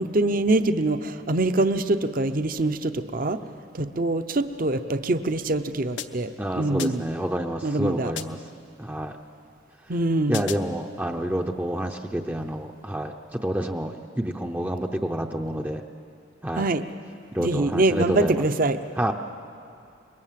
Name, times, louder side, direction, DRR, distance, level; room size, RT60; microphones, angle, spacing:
voice 1, 0.0-3.4 3.7-6.3 6.6-7.0 7.6-8.1 9.9-10.4 16.6-16.8 17.4-18.8, right 2 dB, 45° right, 9 dB, 0.7 m, -24 dB
sound 1, 6.0-6.4 6.8-7.2 8.2-8.6 10.3-10.8, left 8 dB, 60° left, 0.9 m, -37 dB
voice 2, 6.4-8.4 8.8-9.2 10.3-15.8 16.4-16.7 17.3-18.4 19.0-19.1, right 1 dB, 10° right, 3 dB, 0.6 m, -28 dB
26.0 x 22.5 x 7.5 m, 2.5 s
head